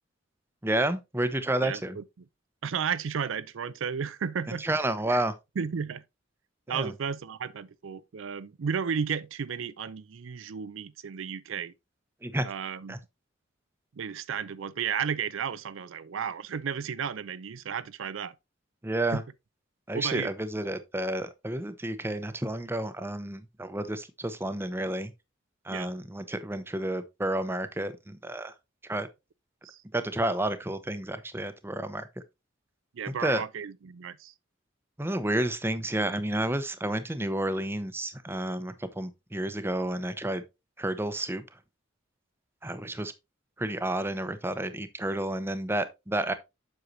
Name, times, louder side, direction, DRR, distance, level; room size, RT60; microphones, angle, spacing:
voice 1, 0.6-2.0 4.6-5.3 6.7-6.9 12.2-12.5 12.9-13.0 18.8-19.2 19.9-25.1 25.6-28.5 28.8-29.1 29.9-32.1 33.1-33.4 35.0-40.4 40.8-41.4 42.6-43.1 43.6-46.3, right 1 dB, 10° right, 0.7 m, -30 dB
voice 2, 1.6-2.0 2.6-4.6 5.1-5.2 5.6-6.0 6.7-11.7 12.4-13.0 14.0-18.3 19.1-19.2 19.9-20.3 25.7-25.9 29.6-29.8 32.9-34.3, right 7 dB, 75° right, 0.4 m, -33 dB
7.9 x 6.4 x 2.7 m
head